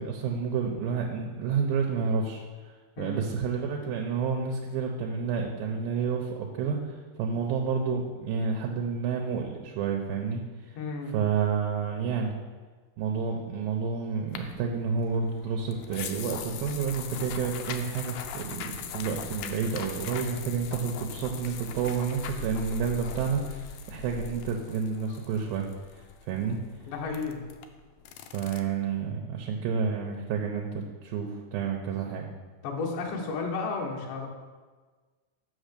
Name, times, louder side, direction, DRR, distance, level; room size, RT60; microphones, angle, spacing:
voice 1, 0.0-2.4 3.0-10.8 11.1-12.3 13.0-25.7 26.3-26.6 28.3-32.3, right 6 dB, 85° right, 1 dB, 2.5 m, -30 dB
voice 2, 10.8-11.1 26.9-27.4 32.6-34.3, left 4 dB, 65° left, 0 dB, 2.4 m, -32 dB
sound 1, 14.3-28.6, left 6 dB, 85° left, 2.4 m, -40 dB
6.3 x 5.8 x 6.6 m, 1.4 s
omnidirectional pair, 4.2 m